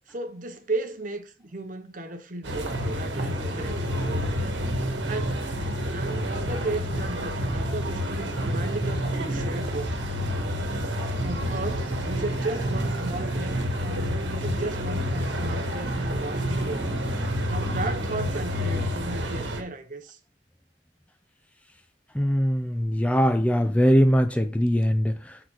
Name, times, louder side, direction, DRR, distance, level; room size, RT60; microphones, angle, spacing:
voice 1, 0.1-4.8 5.1-5.4 5.7-10.2 11.2-17.2 17.5-20.2, right 2 dB, 45° right, 0.8 m, -35 dB
sound 1, 2.4-19.6, equal, 75° right, 1.3 m, -28 dB
voice 2, 22.1-25.4, equal, 5° left, 0.3 m, -21 dB
6.7 x 3.9 x 4.3 m
head